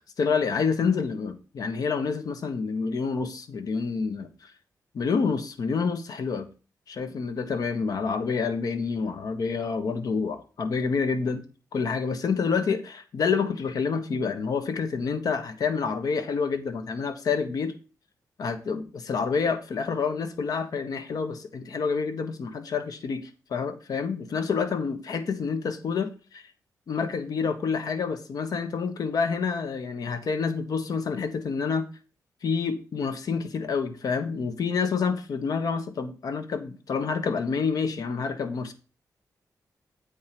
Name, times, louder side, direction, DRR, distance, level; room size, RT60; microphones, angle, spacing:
voice 1, 0.2-4.5 4.9-6.5 6.9-11.4 11.7-17.7 18.4-26.4 26.9-31.8 32.4-38.7, left 5 dB, 65° left, 8 dB, 1.3 m, -28 dB
8.4 x 4.8 x 5.9 m, 0.35 s
wide cardioid pair, 115°, 7 cm